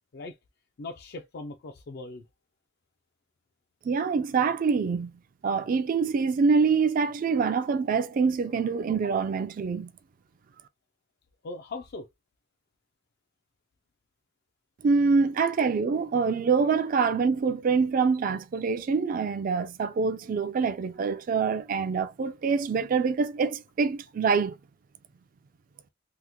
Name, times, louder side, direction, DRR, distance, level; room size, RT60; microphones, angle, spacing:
voice 1, 0.8-2.2 11.4-12.1 15.4-15.5, left 3 dB, 55° left, 0.4 m, -39 dB
voice 2, 3.8-5.1 5.4-9.9 14.8-24.5, right 5 dB, 45° right, 0.3 m, -25 dB
2.9 x 2.1 x 3.4 m
head